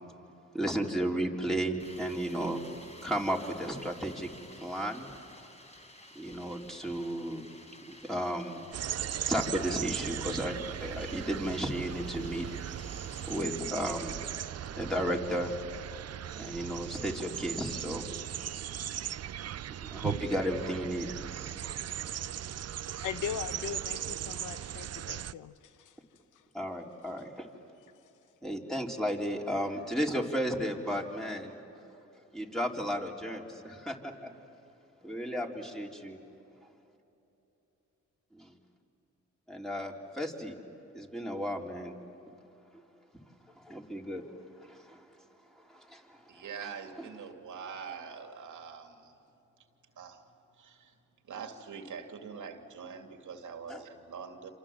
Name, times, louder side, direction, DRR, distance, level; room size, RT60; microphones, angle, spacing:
voice 1, 0.5-2.6 3.0-4.3 4.6-5.1 6.2-7.4 8.1-8.6 9.3-12.4 13.3-14.2 14.8-15.5 16.4-18.1 19.8-21.1 26.5-27.5 28.4-31.5 32.3-34.3 35.0-36.2 38.3-38.5 39.5-40.5 40.9-41.9 43.6-44.2 44.6-45.0 45.7-46.2 47.0-47.1 53.7-53.8, equal, ahead, -1 dB, 3.9 m, -33 dB
sound 1, 1.8-13.4, left 1 dB, 20° left, 4.6 m, -53 dB
sound 2, 8.7-25.3, right 10 dB, 55° right, 0.6 m, -38 dB
voice 2, 23.0-26.0 26.3-26.5 28.0-28.1, left 8 dB, 80° left, 12 dB, 1.0 m, -39 dB
voice 3, 46.3-49.1 50.0-50.2 50.6-50.9 51.3-54.5, right 6 dB, 75° right, 4 dB, 2.6 m, -44 dB
27.5 x 27.5 x 7.5 m, 3.0 s
cardioid pair, 65°, 30 cm